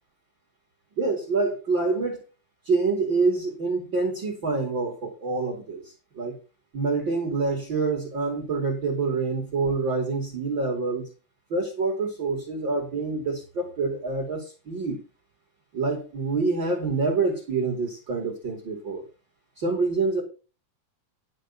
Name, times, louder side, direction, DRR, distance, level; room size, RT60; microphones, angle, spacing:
voice 1, 1.0-2.2 2.6-6.4 6.7-11.1 11.5-15.0 15.7-19.0 19.6-20.2, right 3 dB, 40° right, 1 dB, 3.1 m, -26 dB
11.0 x 6.6 x 5.8 m, 0.34 s
omnidirectional pair, 3.5 m